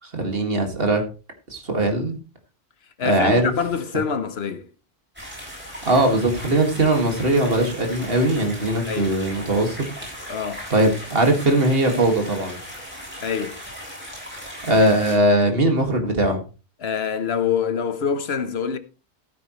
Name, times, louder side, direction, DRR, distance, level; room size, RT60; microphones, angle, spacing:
voice 1, 0.0-1.0 1.5-2.2 3.0-3.5 5.8-9.8 10.7-12.6 14.6-16.4, right 1 dB, 60° right, 2.3 m, -20 dB
voice 2, 3.0-4.6 8.9-9.1 10.3-10.7 13.2-13.6 16.8-18.8, left 6 dB, 70° left, 1.2 m, -25 dB
sound 1, 5.2-15.2, equal, 10° right, 7.2 m, -37 dB
14.5 x 8.9 x 3.1 m
omnidirectional pair, 1.1 m